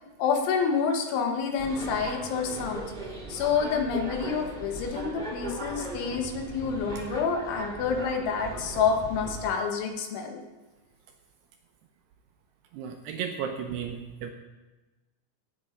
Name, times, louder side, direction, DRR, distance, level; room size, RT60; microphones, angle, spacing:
voice 1, 0.2-2.9 3.3-10.4, left 6 dB, 75° left, 4 dB, 3.7 m, -28 dB
sound 1, 1.6-9.4, right 2 dB, 15° right, 1.7 m, -38 dB
voice 2, 12.7-14.3, right 7 dB, 75° right, 4 dB, 2.6 m, -34 dB
16.0 x 8.7 x 5.1 m, 1.1 s
omnidirectional pair, 5.5 m